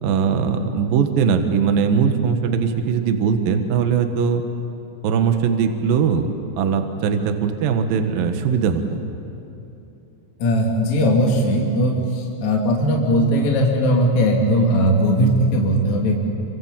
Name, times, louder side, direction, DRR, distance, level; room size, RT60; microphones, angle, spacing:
voice 1, 0.0-4.4 5.0-6.3 6.6-9.0, right 6 dB, 60° right, 6 dB, 2.6 m, -20 dB
voice 2, 10.4-16.1, equal, 40° left, -1 dB, 3.6 m, -18 dB
29.5 x 25.5 x 7.5 m, 3.0 s
omnidirectional pair, 5.6 m